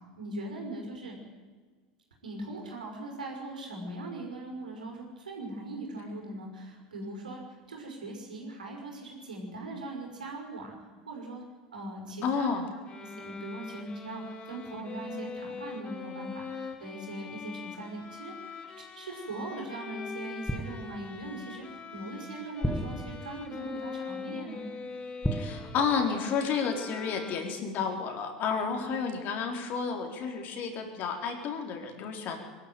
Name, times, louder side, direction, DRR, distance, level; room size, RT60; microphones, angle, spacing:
voice 1, 0.2-1.2 2.2-10.7 11.1-11.4 11.7-12.5 13.0-18.6 18.9-21.7 21.9-24.6 28.6-28.8, right 2 dB, 90° right, 1 dB, 5.8 m, -40 dB
voice 2, 12.2-12.7 25.3-32.4, left 6 dB, 45° left, 3 dB, 4.2 m, -31 dB
sound 1, 12.9-27.8, left 5 dB, 25° left, 2.4 m, -43 dB
sound 2, 20.5-21.2 22.6-23.6 25.2-26.3 26.6-26.8, equal, 5° left, 1.5 m, -34 dB
22.0 x 12.5 x 9.3 m, 1.5 s
hypercardioid pair, 90°, 4 cm